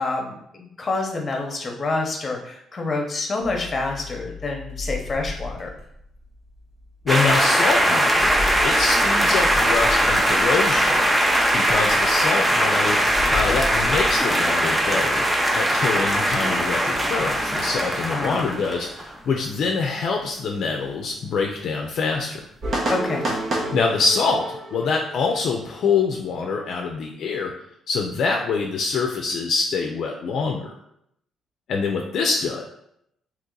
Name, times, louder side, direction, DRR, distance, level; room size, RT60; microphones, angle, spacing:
voice 1, 0.0-5.7 18.1-18.4 22.9-23.2, left 3 dB, 35° left, 2 dB, 0.8 m, -27 dB
sound 1, 3.4-14.2, left 3 dB, 85° right, 1.1 m, -35 dB
voice 2, 7.0-8.3 8.6-11.0 11.5-13.0 13.3-15.2 15.5-22.4 23.7-27.5 27.9-30.7 31.7-32.6, left 4 dB, 65° left, 2 dB, 0.4 m, -25 dB
sound 2, 7.1-19.1, equal, 10° right, 0.6 m, -20 dB
sound 3, 22.6-26.3, right 1 dB, 55° right, 0.9 m, -29 dB
2.9 x 2.8 x 3.8 m, 0.74 s
cardioid pair, 90°, 0 cm